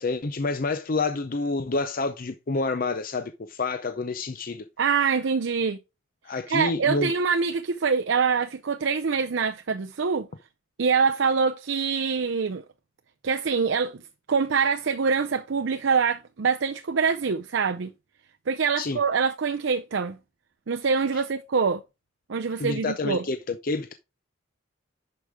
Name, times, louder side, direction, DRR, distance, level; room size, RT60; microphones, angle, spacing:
voice 1, 0.0-4.7 6.2-7.1 18.8-19.0 21.1-21.2 22.6-23.9, left 3 dB, 40° left, 0.5 m, -28 dB
voice 2, 4.8-5.8 6.5-10.3 10.8-12.6 13.2-14.0 14.3-17.9 18.5-20.2 20.7-21.8 22.3-23.2, right 5 dB, 60° right, 0.5 m, -24 dB
11.0 x 5.1 x 3.6 m
head